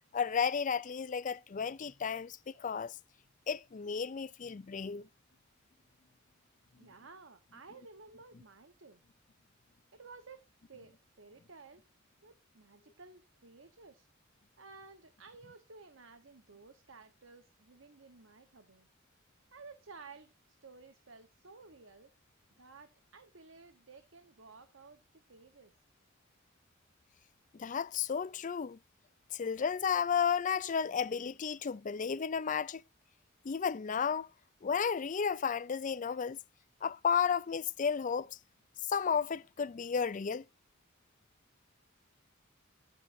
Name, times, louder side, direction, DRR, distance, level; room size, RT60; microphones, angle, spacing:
voice 1, 0.1-2.9 3.5-5.1 27.5-28.8 29.3-32.8 33.4-34.3 34.6-36.4 36.8-38.3 38.9-40.5, left 6 dB, 40° left, 0.4 m, -33 dB
voice 2, 6.8-9.0 9.9-11.8 12.2-14.1 14.6-18.9 19.5-22.1 22.6-25.0 25.3-25.8, right 4 dB, 75° right, 1.2 m, -55 dB
14.0 x 8.8 x 2.7 m
head